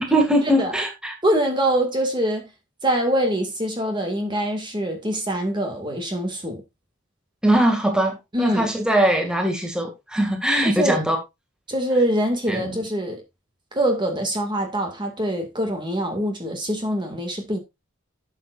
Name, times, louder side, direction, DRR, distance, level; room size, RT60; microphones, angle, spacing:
voice 1, 0.1-1.1 7.4-11.2 12.5-12.8, right 1 dB, 5° right, 2.2 m, -21 dB
voice 2, 1.2-2.5 2.8-6.6 8.3-8.7 10.6-11.0 11.7-13.2 13.7-17.6, right 1 dB, 25° right, 2.2 m, -24 dB
13.0 x 7.5 x 2.5 m
head